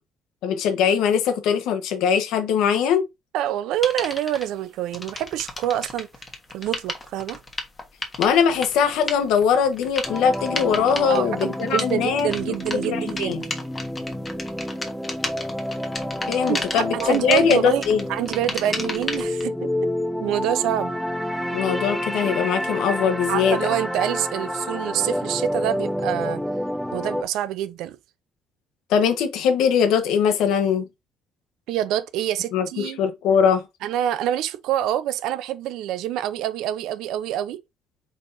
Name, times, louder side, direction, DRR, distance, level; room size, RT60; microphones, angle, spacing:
voice 1, 0.4-3.0 8.2-13.4 16.3-18.0 21.5-23.7 28.9-30.9 32.5-33.6, left 7 dB, 85° left, 1.0 m, -21 dB
voice 2, 3.3-6.1 6.5-7.4 11.1-13.4 16.5-17.8 18.1-19.7 20.2-20.9 23.3-26.4 26.9-28.0 31.7-33.0 33.8-37.6, right 12 dB, 85° right, 0.6 m, -26 dB
sound 1, 3.8-4.4 4.9-19.4, left 2 dB, 20° left, 1.2 m, -33 dB
sound 2, 10.1-27.2, equal, ahead, 0.5 m, -29 dB
4.7 x 4.3 x 2.6 m
cardioid pair, 150°, 0 cm